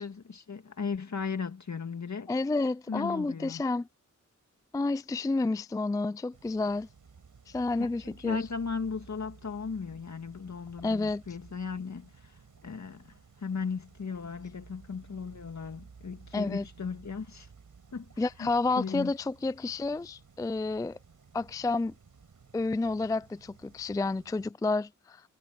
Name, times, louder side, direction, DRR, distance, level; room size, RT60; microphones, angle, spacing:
voice 1, 0.0-2.3 2.9-3.6 7.8-17.5 17.9-18.5 18.8-19.1, left 5 dB, 65° left, 2.0 m, -37 dB
voice 2, 2.3-3.9 4.7-6.9 7.5-8.4 10.8-11.2 16.3-16.6 18.2-21.0 21.3-21.9 22.5-25.2, left 3 dB, 10° left, 0.3 m, -30 dB
sound 1, 6.3-24.5, right 5 dB, 90° right, 7.0 m, -55 dB
cardioid pair, 60°, 31 cm